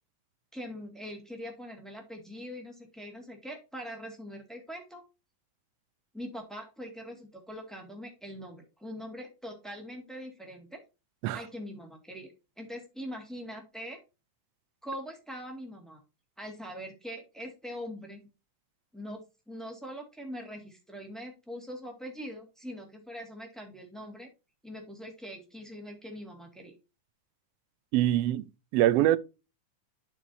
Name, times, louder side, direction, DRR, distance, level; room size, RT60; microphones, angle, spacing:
voice 1, 0.5-5.0 6.1-10.8 11.3-14.0 14.8-16.0 16.4-18.3 18.9-19.2 19.5-24.3 24.6-26.7, equal, ahead, 1.4 m, -42 dB
voice 2, 27.9-28.5 28.7-29.2, right 13 dB, 85° right, 1.4 m, -23 dB
11.5 x 4.7 x 2.7 m
omnidirectional pair, 3.4 m